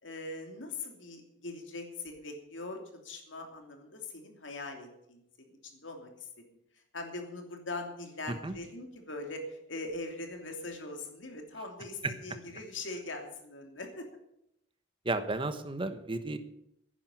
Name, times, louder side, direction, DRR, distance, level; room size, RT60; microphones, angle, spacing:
voice 1, 0.0-6.3 6.9-14.1, left 2 dB, 80° left, 3 dB, 3.0 m, -41 dB
voice 2, 15.0-16.4, right 2 dB, 25° right, 10 dB, 1.2 m, -33 dB
11.0 x 10.0 x 9.2 m, 0.79 s
head